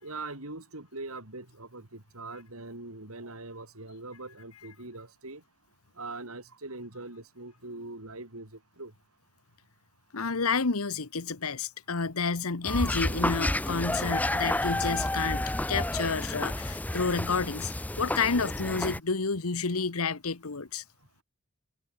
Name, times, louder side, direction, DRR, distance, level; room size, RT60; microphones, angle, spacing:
voice 1, 0.0-5.4 6.0-8.9, right 2 dB, 80° right, 4.4 m, -42 dB
voice 2, 10.1-15.4 15.7-17.7 18.0-20.8, left 4 dB, 85° left, 1.2 m, -30 dB
sound 1, 12.6-19.0, left 1 dB, 5° left, 0.5 m, -30 dB
head